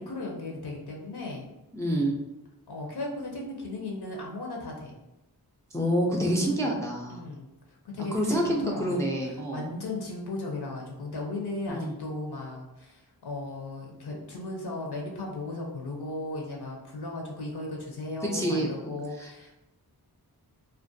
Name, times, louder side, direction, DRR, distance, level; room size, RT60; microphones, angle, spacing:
voice 1, 0.0-1.5 2.7-5.0 6.4-6.7 7.1-7.5 7.9-9.1 9.5-19.6, left 2 dB, 80° left, -1 dB, 0.6 m, -36 dB
voice 2, 1.7-2.1 5.7-7.2 8.1-9.6 11.7-11.9 18.3-18.9 19.2-19.3, equal, 10° left, -1 dB, 0.3 m, -27 dB
2.5 x 2.1 x 2.6 m, 0.95 s
wide cardioid pair, 80°, 39 cm